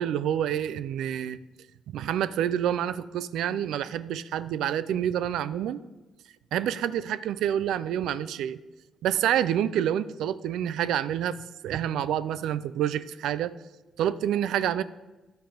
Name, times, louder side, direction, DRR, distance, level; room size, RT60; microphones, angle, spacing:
voice 1, 0.0-1.4 1.9-5.8 6.5-8.6 9.0-11.4 11.6-13.6 14.0-14.8, right 10 dB, 80° right, 15 dB, 0.4 m, -28 dB
10.0 x 8.1 x 5.0 m, 1.1 s
cardioid pair, 90°, 0 cm